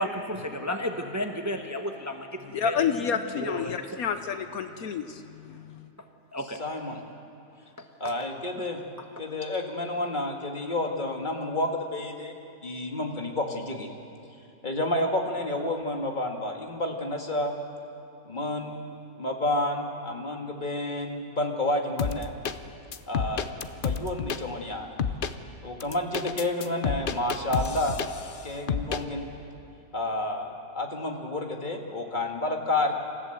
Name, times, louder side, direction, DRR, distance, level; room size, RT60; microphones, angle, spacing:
voice 1, 0.0-2.8 3.3-4.0 6.3-6.6 7.8-8.1, left 1 dB, 15° right, 4 dB, 0.9 m, -33 dB
voice 2, 2.5-5.9, left 7 dB, 70° left, 9 dB, 1.2 m, -30 dB
voice 3, 6.6-7.0 8.0-8.8 9.2-12.3 12.6-13.9 14.6-17.5 18.2-18.8 19.2-22.3 23.1-23.5 23.7-24.9 25.6-28.0 28.4-29.3 29.9-32.9, left 1 dB, 30° left, 2 dB, 1.9 m, -30 dB
sound 1, 22.0-22.6 22.9-24.4 25.0-25.3 25.8-28.4 28.7-29.0, left 6 dB, 50° left, 0.7 m, -29 dB
26.5 x 14.5 x 7.9 m, 2.6 s
omnidirectional pair, 1.6 m